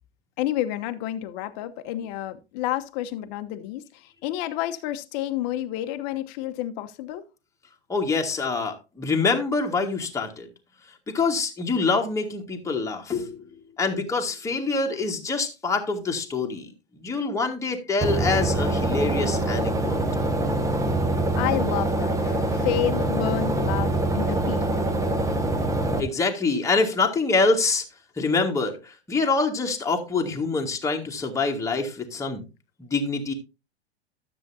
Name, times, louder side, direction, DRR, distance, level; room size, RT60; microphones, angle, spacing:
voice 1, 0.4-7.2 21.4-24.7, left 13 dB, 40° left, 1.0 m, -30 dB
voice 2, 7.9-10.5 11.1-13.4 13.8-20.0 26.0-27.8 28.2-32.4 32.8-33.3, left 4 dB, 10° left, 1.7 m, -25 dB
sound 1, 18.0-26.0, right 1 dB, 10° right, 1.0 m, -24 dB
12.5 x 7.5 x 2.7 m
figure-of-eight pair, 100°, 33 cm